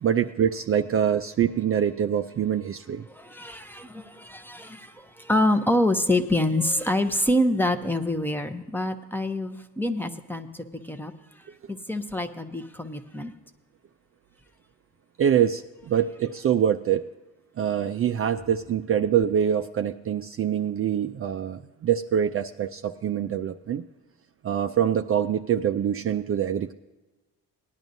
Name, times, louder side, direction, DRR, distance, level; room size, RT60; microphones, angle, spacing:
voice 1, 0.0-3.1 15.2-17.1 17.6-23.8 24.4-26.7, right 9 dB, 40° right, 7 dB, 0.4 m, -25 dB
voice 2, 3.1-11.1 11.7-13.3, left 1 dB, 5° left, 8 dB, 0.7 m, -26 dB
18.5 x 10.5 x 2.6 m, 1.2 s
cardioid pair, 115°, 36 cm